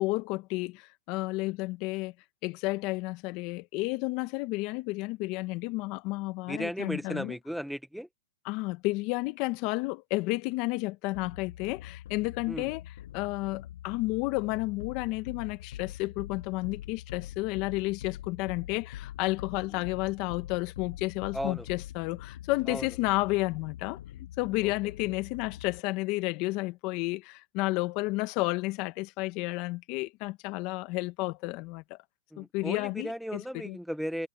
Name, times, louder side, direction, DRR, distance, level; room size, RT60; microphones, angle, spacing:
voice 1, 0.0-2.1 2.4-7.3 8.4-12.8 13.1-32.0 32.4-33.8, left 22 dB, 40° left, 1.1 m, -31 dB
voice 2, 6.5-8.1 12.5-12.7 21.3-21.7 22.7-22.9 24.6-24.7 32.3-34.3, equal, ahead, 0.8 m, -35 dB
sound 1, 11.1-25.8, left 12 dB, 65° left, 6.5 m, -44 dB
hypercardioid pair, 145°, 0 cm